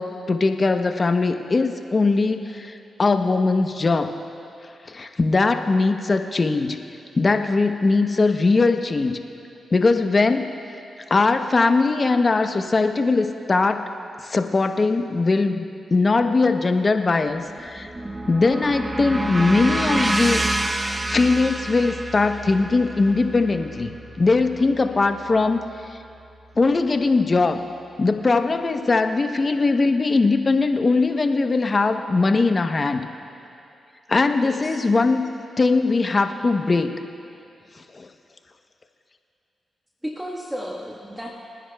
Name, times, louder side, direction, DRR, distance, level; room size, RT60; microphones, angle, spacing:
voice 1, 0.0-4.1 4.9-6.8 7.2-9.2 9.7-10.5 11.1-13.8 14.2-15.7 15.9-17.9 18.3-20.4 20.8-25.6 26.6-27.6 28.0-33.0 34.1-35.2 35.6-36.9 37.9-38.1, left 3 dB, 45° left, 7 dB, 0.8 m, -20 dB
sound 1, 17.3-25.6, right 2 dB, 25° right, 0.8 m, -28 dB
voice 2, 34.4-34.7 40.0-41.3, equal, 10° right, -3 dB, 1.4 m, -33 dB
28.5 x 10.0 x 2.3 m, 2.6 s
supercardioid pair, 50°, 0 cm